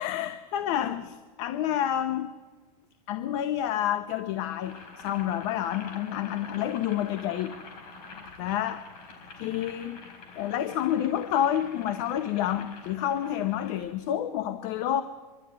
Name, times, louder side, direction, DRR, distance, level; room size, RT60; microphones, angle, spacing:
voice 1, 0.0-2.3 3.1-7.6 8.4-8.8 9.4-10.0 10.4-15.0, left 11 dB, 50° left, 11 dB, 0.9 m, -29 dB
Boiling, 4.5-13.9, left 4 dB, 70° left, 4.3 m, -47 dB
24.5 x 12.0 x 9.5 m, 1.4 s
supercardioid pair, 165°, 21 cm